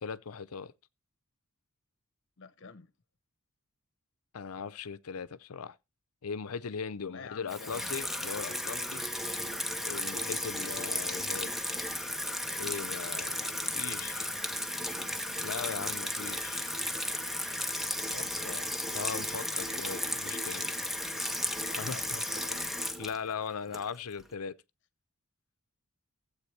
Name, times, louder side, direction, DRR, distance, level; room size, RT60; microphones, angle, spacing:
voice 1, 0.0-0.7 4.3-5.8 6.2-9.0 9.8-11.6 12.6-14.3 15.4-16.6 18.9-20.7 21.8-22.2 23.0-24.6, left 6 dB, 80° left, 0.6 m, -39 dB
voice 2, 2.4-2.9 7.1-7.9 18.1-18.7 21.9-22.6, left 4 dB, 60° left, 0.9 m, -48 dB
Water tap faucet / Sink (filling or washing), 7.5-24.2, left 1 dB, ahead, 0.7 m, -34 dB
15.0 x 7.9 x 3.2 m
head